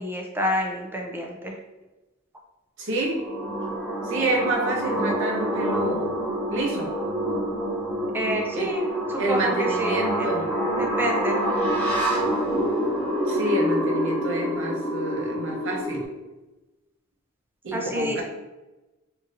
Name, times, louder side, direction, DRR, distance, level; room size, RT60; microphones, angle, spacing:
voice 1, 0.0-1.5 8.1-10.3 10.7-11.4 17.7-18.2, equal, 10° right, 0 dB, 0.5 m, -28 dB
voice 2, 2.8-3.2 4.0-6.2 6.5-6.9 8.5-8.7 9.2-10.4 13.2-16.0 17.6-18.2, right 1 dB, 65° right, -2 dB, 0.8 m, -28 dB
sound 1, 3.0-16.1, right 1 dB, 10° left, 1.0 m, -27 dB
4.0 x 2.7 x 2.5 m, 1.1 s
head